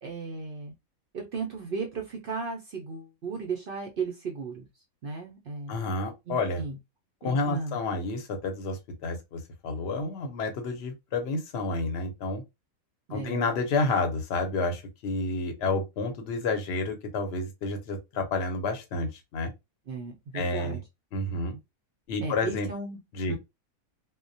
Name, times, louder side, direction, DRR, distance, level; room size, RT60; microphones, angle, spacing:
voice 1, 0.0-0.7 1.1-4.7 5.0-5.8 6.3-6.8 7.2-7.8 13.1-13.5 19.9-20.8 22.2-23.0 23.3-23.4, right 4 dB, 65° right, 0.5 m, -35 dB
voice 2, 5.7-6.6 7.2-12.4 13.1-19.5 20.3-20.8 21.1-21.6 22.1-22.7 23.1-23.4, left 3 dB, 60° left, 0.8 m, -30 dB
2.2 x 2.1 x 2.6 m
omnidirectional pair, 1.5 m